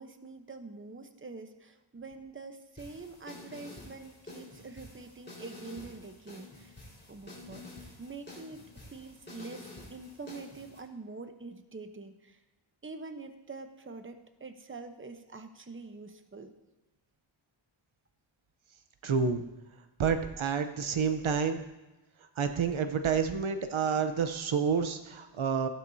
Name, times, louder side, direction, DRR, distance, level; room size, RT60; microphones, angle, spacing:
voice 1, 0.0-12.4 12.8-16.5, right 3 dB, 25° right, 7 dB, 0.9 m, -45 dB
sound 1, 2.8-10.8, left 2 dB, 20° left, 4.5 m, -49 dB
voice 2, 19.0-19.4 20.0-21.6 22.4-25.7, right 6 dB, 70° right, 8 dB, 0.9 m, -29 dB
16.0 x 12.0 x 2.8 m, 1.1 s
wide cardioid pair, 95°, 49 cm